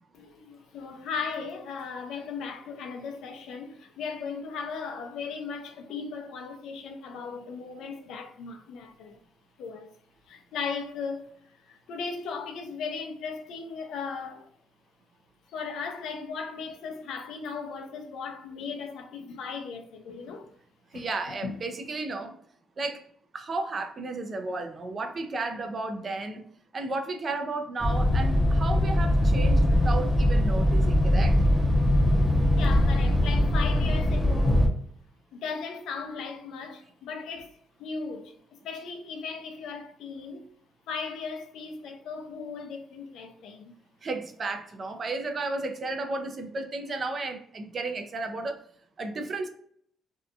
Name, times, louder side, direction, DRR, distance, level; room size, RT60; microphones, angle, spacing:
voice 1, 0.1-9.2 9.6-9.9 10.3-14.5 15.5-20.5 20.9-21.6 32.5-34.7 35.3-37.5 37.8-38.3 38.6-40.5 40.9-43.8, left 5 dB, 80° left, 0.5 m, -37 dB
voice 2, 20.9-22.4 22.8-23.0 23.3-26.4 26.7-31.4 44.0-48.6 49.0-49.5, right 3 dB, 45° right, 0.5 m, -33 dB
sound 1, 27.8-34.7, left 1 dB, 5° right, 0.7 m, -22 dB
2.7 x 2.3 x 2.4 m
cardioid pair, 90°, 0 cm